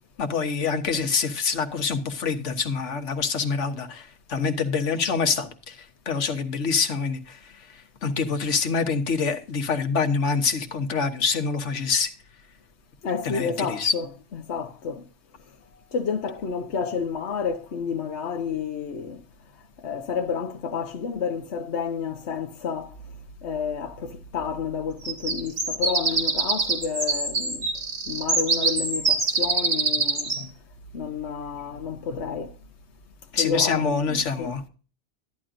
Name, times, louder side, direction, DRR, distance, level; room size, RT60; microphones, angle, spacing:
voice 1, 0.2-12.1 13.2-13.9 33.3-34.6, left 5 dB, 85° left, 1.5 m, -26 dB
voice 2, 13.0-14.1 14.3-15.0 15.9-19.2 19.8-22.9 23.4-27.7 28.1-30.5 30.9-32.5 33.3-34.5, left 6 dB, 70° left, 1.2 m, -30 dB
sound 1, 25.0-30.4, right 3 dB, 85° right, 2.7 m, -25 dB
13.0 x 10.0 x 2.5 m
omnidirectional pair, 1.2 m